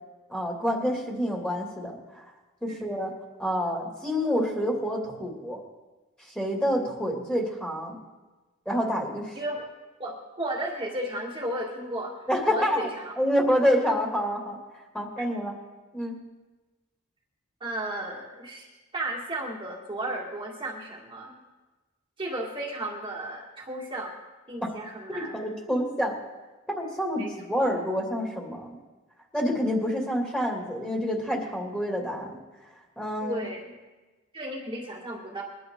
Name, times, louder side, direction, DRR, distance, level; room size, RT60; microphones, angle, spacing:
voice 1, 0.3-2.3 2.6-3.1 3.4-5.6 6.2-8.0 8.7-9.4 12.3-12.9 13.2-14.6 14.9-15.5 15.9-16.1 25.1-26.1 26.7-28.8 29.3-32.3 33.0-33.4, equal, 5° left, -1 dB, 2.8 m, -28 dB
voice 2, 10.0-12.2 12.5-13.1 15.2-15.3 17.6-18.7 18.9-21.3 22.2-24.1 24.5-25.4 27.2-27.3 27.6-27.7 33.2-33.7 34.3-35.4, right 1 dB, 25° right, -4 dB, 2.1 m, -34 dB
22.0 x 11.5 x 3.9 m, 1.2 s
head